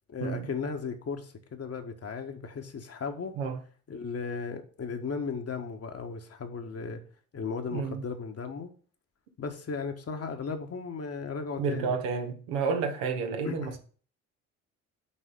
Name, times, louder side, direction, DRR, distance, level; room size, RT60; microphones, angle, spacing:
voice 1, 0.1-3.3 3.9-7.0 7.3-8.7 9.4-11.9 13.4-13.8, left 5 dB, 35° left, 1.5 m, -36 dB
voice 2, 7.7-8.0 11.6-13.8, right 5 dB, 70° right, 1.3 m, -30 dB
8.9 x 4.1 x 5.4 m
figure-of-eight pair, 50°, 41 cm